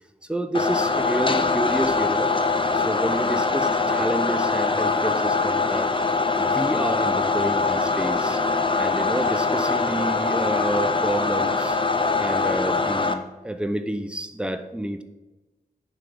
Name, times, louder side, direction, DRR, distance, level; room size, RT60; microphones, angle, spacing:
voice 1, 0.3-2.3 2.7-5.9 6.4-8.4 8.8-11.8 12.2-15.0, right 1 dB, 5° right, 9 dB, 0.8 m, -29 dB
sound 1, 0.5-13.1, left 3 dB, 30° left, 0.7 m, -23 dB
9.6 x 3.7 x 6.9 m, 1.1 s
wide cardioid pair, 70°, 17 cm